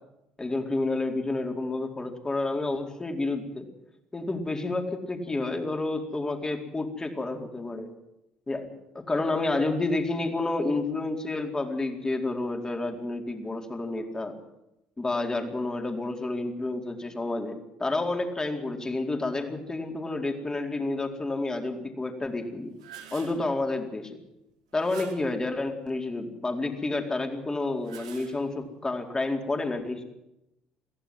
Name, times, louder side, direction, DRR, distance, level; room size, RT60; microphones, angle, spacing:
voice 1, 0.4-3.6 4.1-7.9 8.5-14.4 15.0-22.7 23.1-24.2 24.7-30.0, left 2 dB, 20° left, 4 dB, 4.4 m, -30 dB
sound 1, 22.5-23.5 24.7-25.4 27.6-28.7, right 8 dB, 90° right, 2.5 m, -47 dB
22.5 x 15.5 x 7.9 m, 0.88 s
hypercardioid pair, 60°, 3 cm